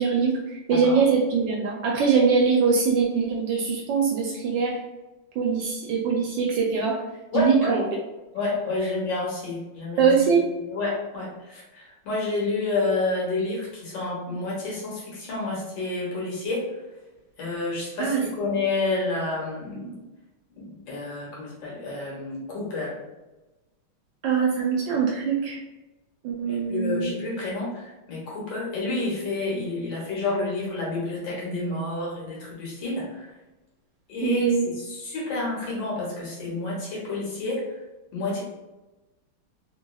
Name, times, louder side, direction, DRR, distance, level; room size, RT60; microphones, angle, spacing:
voice 1, 0.0-4.8 5.4-7.0 7.3-7.8 10.0-10.4 18.0-18.2 24.2-25.6 26.2-27.1 34.2-34.6, right 5 dB, 75° right, -1 dB, 1.1 m, -22 dB
voice 2, 0.7-1.0 7.3-7.8 8.3-10.1 10.7-16.6 17.4-20.0 20.5-23.0 26.7-33.3 34.1-34.5 34.8-37.6 38.1-38.4, left 2 dB, 65° left, -5 dB, 1.7 m, -29 dB
3.3 x 3.0 x 2.3 m, 1.1 s
omnidirectional pair, 2.3 m